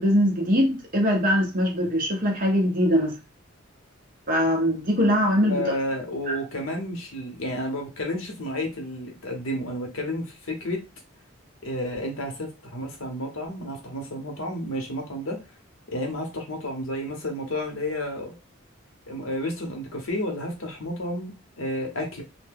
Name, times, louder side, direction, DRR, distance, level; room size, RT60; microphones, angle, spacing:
voice 1, 0.0-3.1 4.3-5.6 6.3-6.4, equal, 40° right, 1.0 m, -22 dB
voice 2, 5.5-10.8 11.6-15.4 15.9-18.3 19.1-22.2, left 1 dB, 80° left, 1.0 m, -31 dB
2.7 x 2.2 x 3.5 m
head